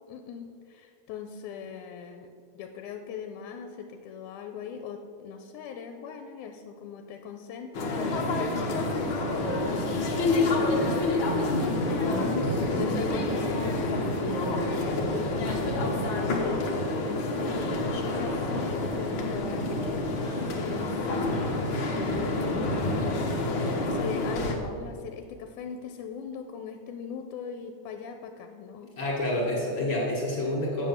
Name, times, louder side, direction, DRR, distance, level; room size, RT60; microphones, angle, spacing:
voice 1, 0.1-9.9 10.4-11.7 12.7-23.4 23.8-28.9, left 6 dB, 85° left, 6 dB, 2.0 m, -40 dB
sound 1, 7.7-24.6, left 2 dB, 60° left, 1.3 m, -28 dB
voice 2, 12.2-13.1 29.0-30.9, left 1 dB, 40° left, -4 dB, 2.5 m, -29 dB
7.6 x 7.5 x 7.1 m, 2.3 s
omnidirectional pair, 3.6 m